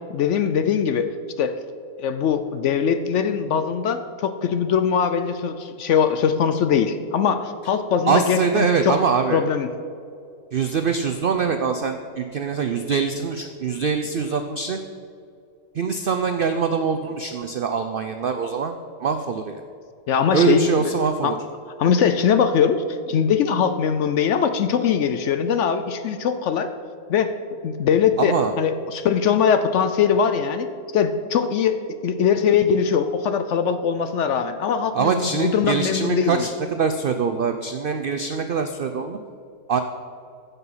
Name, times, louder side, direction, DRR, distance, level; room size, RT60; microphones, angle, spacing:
voice 1, 0.1-1.1 1.4-1.5 2.0-9.0 9.3-9.7 20.1-20.7 21.2-21.4 21.8-26.7 27.1-27.3 27.6-31.8 32.0-36.5, left 7 dB, 65° left, 9 dB, 0.8 m, -21 dB
voice 2, 8.1-9.4 10.5-14.8 15.7-19.6 20.3-21.4 28.2-28.5 34.9-39.2 39.7-39.8, right 5 dB, 75° right, 7 dB, 0.5 m, -23 dB
15.5 x 5.5 x 5.6 m, 2.5 s
omnidirectional pair, 1.6 m